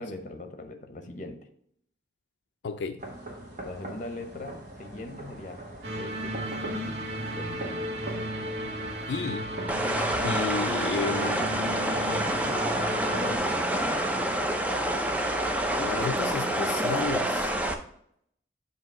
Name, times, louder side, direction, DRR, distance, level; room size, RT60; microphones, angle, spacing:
voice 1, 0.0-1.4 3.6-5.6 5.9-6.4 6.7-7.9 11.4-12.7 13.1-14.1, left 2 dB, 45° left, 7 dB, 0.8 m, -40 dB
voice 2, 2.6-3.0 9.1-9.5 10.2-11.4 15.8-17.5, left 5 dB, 75° left, 6 dB, 0.4 m, -32 dB
sound 1, 3.0-16.3, right 1 dB, 45° right, 1.3 m, -41 dB
sound 2, 5.8-13.4, right 1 dB, 70° right, 1.2 m, -34 dB
sound 3, 9.7-17.7, right 1 dB, 10° right, 0.4 m, -28 dB
7.3 x 2.8 x 5.9 m, 0.68 s
head